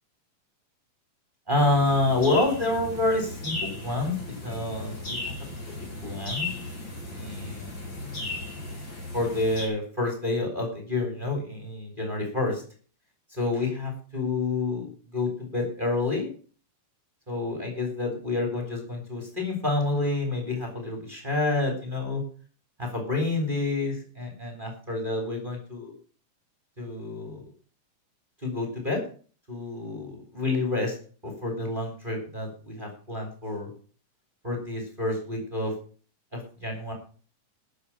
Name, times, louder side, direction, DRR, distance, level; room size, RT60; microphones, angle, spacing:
voice 1, 1.5-4.1 4.4-5.2 5.7-6.5 7.1-8.2 9.1-12.6 13.3-16.3 17.3-22.2 22.8-25.9 26.8-27.5 28.4-29.0 29.5-31.0 31.2-33.7 34.4-35.7 36.3-36.9, left 2 dB, 15° right, 1 dB, 3.8 m, -28 dB
sound 1, 1.6-9.7, left 2 dB, 35° left, 5.3 m, -36 dB
13.5 x 7.6 x 7.3 m, 0.40 s
omnidirectional pair, 3.7 m